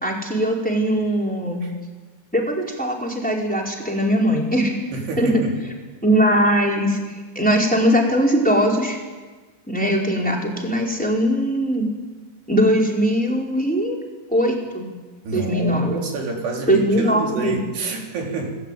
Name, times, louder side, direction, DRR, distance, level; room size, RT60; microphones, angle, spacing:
voice 1, 0.0-1.7 2.3-4.8 5.2-5.4 6.0-9.0 9.7-11.9 12.5-14.0 14.3-14.9 15.3-15.9 16.7-17.6, equal, ahead, -1 dB, 4.0 m, -20 dB
voice 2, 4.9-5.6 15.2-18.6, right 3 dB, 70° right, 1 dB, 5.8 m, -28 dB
25.5 x 20.0 x 9.3 m, 1.4 s
omnidirectional pair, 5.0 m